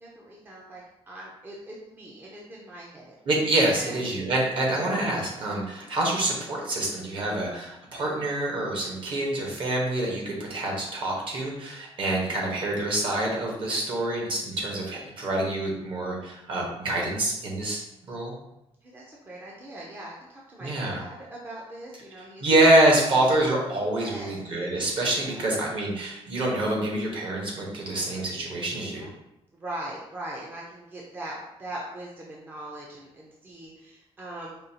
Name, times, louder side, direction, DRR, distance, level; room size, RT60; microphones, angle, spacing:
voice 1, 0.0-3.1 3.7-4.0 5.6-5.9 18.8-22.5 23.9-24.4 25.2-25.4 28.7-29.1 29.5-34.6, right 1 dB, 20° right, -4 dB, 0.5 m, -41 dB
voice 2, 3.3-17.8 18.1-18.3 20.6-21.0 22.4-29.0, right 1 dB, 50° right, -2 dB, 1.1 m, -26 dB
5.1 x 2.3 x 2.8 m, 0.88 s
cardioid pair, 140°, 11 cm